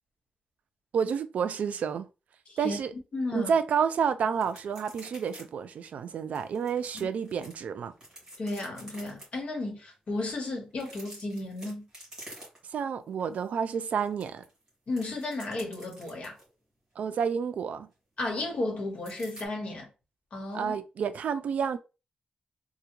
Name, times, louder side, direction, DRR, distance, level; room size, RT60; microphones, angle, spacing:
voice 1, 0.9-2.1 2.6-2.9 3.3-7.9 12.7-14.4 17.0-17.9 20.5-21.8, right 7 dB, 65° right, 0.3 m, -29 dB
voice 2, 3.1-3.5 6.9-7.1 8.4-11.9 14.9-16.4 18.2-19.9 20.3-20.8, left 2 dB, 45° left, 1.1 m, -34 dB
sound 1, 4.4-5.4 5.7-5.8 6.4-7.5 7.9-9.3 10.7-12.8 13.2-13.4 13.7-16.5 19.0-19.5, right 1 dB, 25° right, 1.8 m, -48 dB
3.4 x 2.2 x 3.0 m
wide cardioid pair, 150°, 3 cm